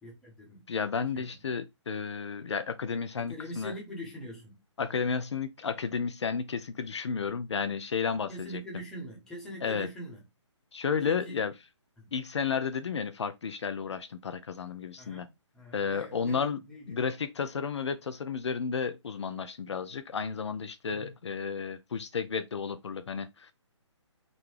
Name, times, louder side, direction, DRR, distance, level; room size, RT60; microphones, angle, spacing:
voice 1, 0.0-0.6 1.1-1.3 3.2-4.6 8.1-10.2 11.0-11.4 12.0-12.1 15.0-17.0 20.8-21.2, equal, 5° left, 0.9 m, -43 dB
voice 2, 0.7-3.7 4.8-8.6 9.6-9.9 10.7-11.5 12.1-15.3 15.7-16.6 16.9-23.5, left 6 dB, 65° left, 0.4 m, -32 dB
3.8 x 2.2 x 3.2 m
figure-of-eight pair, 140°, 16 cm